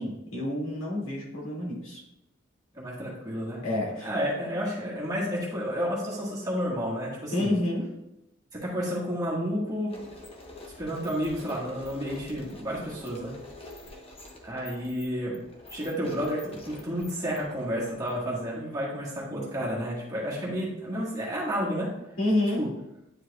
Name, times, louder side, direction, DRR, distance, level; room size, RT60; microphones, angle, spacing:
voice 1, 0.0-2.0 3.6-4.1 7.3-7.9 22.2-22.7, left 1 dB, 75° left, -4 dB, 2.1 m, -28 dB
voice 2, 2.7-3.6 4.0-7.5 8.5-9.9 10.8-13.3 14.4-15.4 15.7-21.9 22.6-22.7, equal, 15° right, -5 dB, 1.4 m, -31 dB
sound 1, 9.9-18.4, left 2 dB, 25° left, 0.8 m, -47 dB
9.8 x 4.6 x 2.3 m, 0.90 s
head